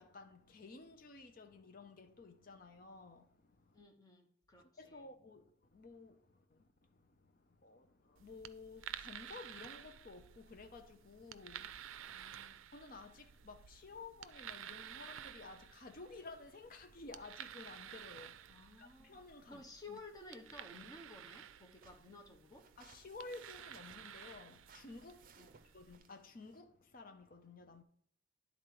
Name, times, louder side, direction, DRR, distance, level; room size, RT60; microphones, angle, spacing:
voice 1, 0.0-3.8 4.6-12.2 12.7-20.0 22.8-27.8, left 3 dB, 45° left, 0.7 m, -54 dB
voice 2, 3.7-5.1 12.1-12.7 18.5-22.7 25.4-25.7, left 2 dB, 20° left, 1.0 m, -55 dB
sound 1, 8.2-26.0, right 10 dB, 90° right, 0.4 m, -53 dB
sound 2, 20.4-26.6, right 5 dB, 45° right, 0.6 m, -65 dB
10.0 x 4.0 x 4.8 m
head